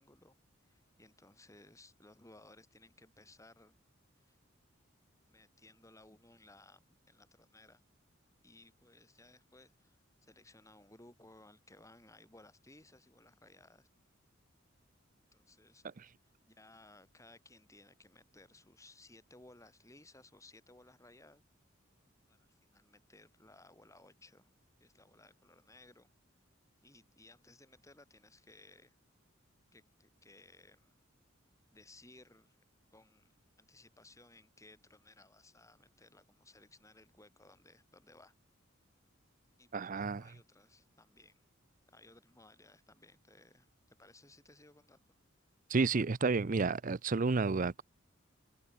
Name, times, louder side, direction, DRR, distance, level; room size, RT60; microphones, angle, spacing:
voice 1, 0.0-3.8 4.2-4.4 5.3-7.8 8.4-13.9 15.3-15.9 16.2-21.4 22.3-24.5 24.8-26.1 26.8-29.0 29.7-30.9 31.7-32.6 32.9-38.3 39.6-41.5 41.9-45.1, left 2 dB, 15° left, 8.0 m, -61 dB
voice 2, 39.7-40.3 45.7-47.8, right 4 dB, 40° right, 0.5 m, -31 dB
head